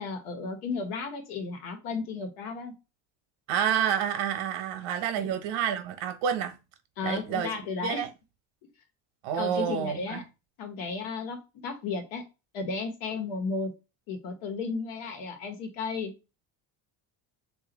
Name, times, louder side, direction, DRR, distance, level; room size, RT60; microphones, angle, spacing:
voice 1, 0.0-2.7 5.2-5.3 7.0-8.1 9.3-10.2 10.6-11.4 11.6-12.2 12.5-13.7 14.1-16.1, left 4 dB, 80° left, 1.3 m, -34 dB
voice 2, 3.5-6.5 7.0-7.5 7.8-8.1 9.2-10.2, right 9 dB, 70° right, 1.0 m, -29 dB
3.0 x 2.8 x 3.9 m
cardioid pair, 100°, 50 cm